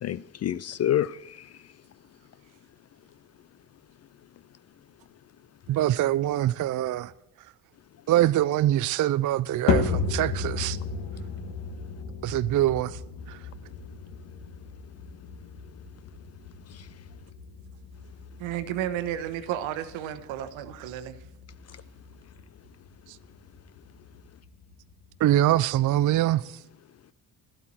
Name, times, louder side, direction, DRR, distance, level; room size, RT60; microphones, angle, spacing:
voice 1, 0.0-1.5 16.7-16.9, left 11 dB, 35° left, 0.4 m, -28 dB
voice 2, 5.7-7.1 7.4-7.5 8.1-10.8 12.2-13.0 13.3-13.5 23.1-23.2 25.2-26.6, right 13 dB, 40° right, 0.5 m, -24 dB
sound 1, 9.7-26.1, left 5 dB, 65° left, 1.7 m, -35 dB
voice 3, 18.4-21.3, right 11 dB, 70° right, 1.2 m, -32 dB
13.5 x 12.0 x 4.4 m
hypercardioid pair, 45°, 48 cm